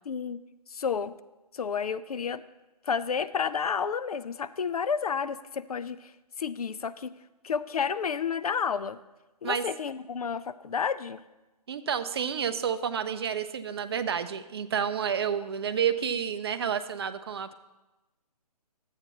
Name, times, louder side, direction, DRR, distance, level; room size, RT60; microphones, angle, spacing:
voice 1, 0.1-0.4 0.7-1.1 1.5-2.4 2.8-6.1 6.4-7.1 7.4-9.0 9.4-11.2, left 6 dB, 65° left, 14 dB, 0.4 m, -30 dB
voice 2, 11.7-17.5, right 7 dB, 40° right, 10 dB, 0.4 m, -30 dB
11.0 x 8.1 x 3.0 m, 1.1 s
figure-of-eight pair, 145°, 20 cm